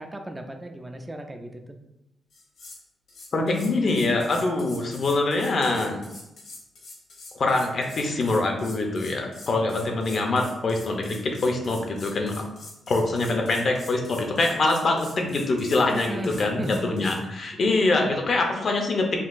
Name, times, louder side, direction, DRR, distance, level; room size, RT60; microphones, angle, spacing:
voice 1, 0.0-1.8 10.1-10.2 15.9-17.2, right 1 dB, 15° right, 4 dB, 0.3 m, -35 dB
sound 1, 2.3-2.8 3.1-17.2, left 2 dB, 70° left, 1.0 m, -45 dB
voice 2, 3.3-6.0 7.3-12.4 12.9-19.2, left 2 dB, 55° left, 2 dB, 0.6 m, -24 dB
3.7 x 2.3 x 2.5 m, 0.91 s
cardioid pair, 80°, 0 cm